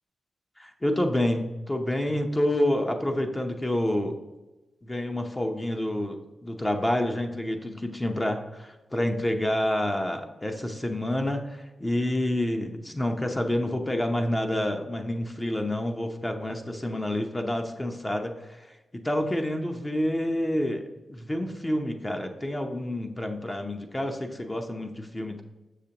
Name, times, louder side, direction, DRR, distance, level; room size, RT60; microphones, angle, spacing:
voice 1, 0.6-4.2 4.8-18.7 18.9-25.4, left 1 dB, 20° left, 4 dB, 0.7 m, -28 dB
6.6 x 6.6 x 2.9 m, 1.1 s
cardioid pair, 70°, 0 cm